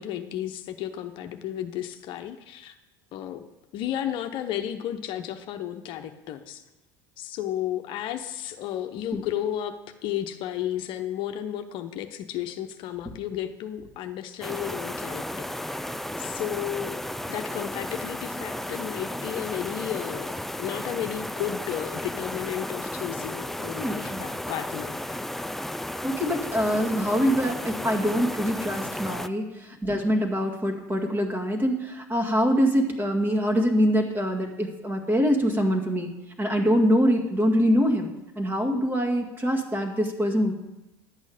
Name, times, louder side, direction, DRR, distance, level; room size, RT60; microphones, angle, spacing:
voice 1, 0.0-2.8 3.1-3.4 3.7-6.6 7.2-9.7 10.0-15.2 15.6-17.0 17.3-25.3, left 11 dB, 55° left, 7 dB, 0.8 m, -33 dB
sound 1, 14.4-29.3, left 1 dB, 5° left, 0.4 m, -34 dB
voice 2, 23.8-24.2 26.0-36.1 36.4-40.5, equal, 20° right, 2 dB, 2.0 m, -24 dB
11.0 x 8.3 x 5.0 m, 0.99 s
hypercardioid pair, 75°, 10 cm